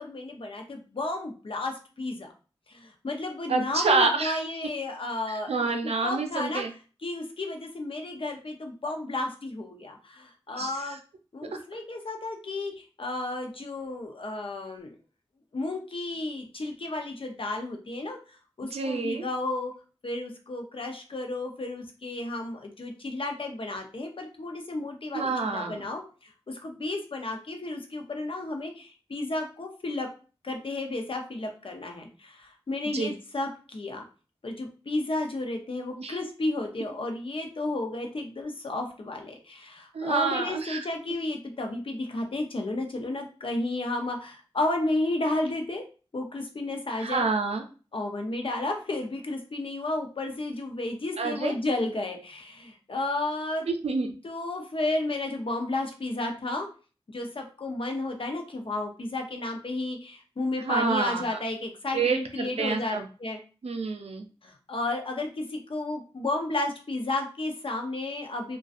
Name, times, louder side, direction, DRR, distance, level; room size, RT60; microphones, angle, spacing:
voice 1, 0.0-2.3 2.7-6.6 7.0-11.0 11.3-14.9 15.5-19.7 20.0-30.1 30.4-34.0 34.4-45.8 46.1-47.3 47.9-53.7 54.2-56.7 57.1-63.4 64.4-68.6, left 2 dB, 60° left, 3 dB, 0.5 m, -32 dB
voice 2, 3.5-4.4 5.3-6.7 10.5-10.9 18.7-19.2 25.1-25.9 32.9-33.1 36.0-36.1 39.9-40.9 47.0-47.6 51.2-51.5 53.7-54.1 60.6-61.4 61.9-63.1 63.6-64.2, right 4 dB, 85° right, 5 dB, 0.4 m, -28 dB
2.5 x 2.2 x 2.4 m, 0.36 s
wide cardioid pair, 50°, 10 cm